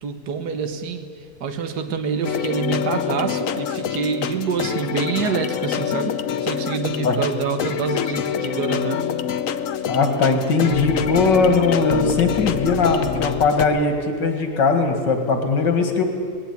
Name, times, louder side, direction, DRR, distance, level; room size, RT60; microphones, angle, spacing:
voice 1, 0.0-1.1 1.4-9.1, right 5 dB, 70° right, 8 dB, 1.9 m, -26 dB
sound 1, 2.2-13.7, left 8 dB, 55° left, 1.1 m, -26 dB
voice 2, 9.9-16.0, left 4 dB, 90° left, 5 dB, 2.7 m, -19 dB
19.5 x 17.5 x 9.7 m, 2.2 s
omnidirectional pair, 1.9 m